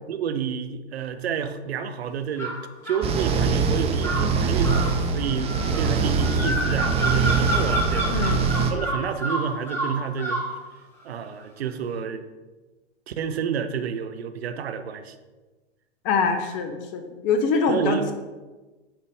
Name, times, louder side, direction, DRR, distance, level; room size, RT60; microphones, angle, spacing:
voice 1, 0.1-2.6 2.8-8.2 8.7-10.4 11.0-12.2 13.1-15.1 17.7-18.1, right 7 dB, 70° right, 10 dB, 0.7 m, -29 dB
sound 1, 2.4-3.1 4.0-10.5, right 1 dB, 5° left, 1.5 m, -29 dB
sound 2, 3.0-8.7, right 4 dB, 20° right, 0.6 m, -23 dB
voice 2, 8.1-8.4 16.0-18.1, left 5 dB, 35° left, 6 dB, 0.7 m, -24 dB
8.8 x 4.0 x 3.4 m, 1.2 s
figure-of-eight pair, 105°, 33 cm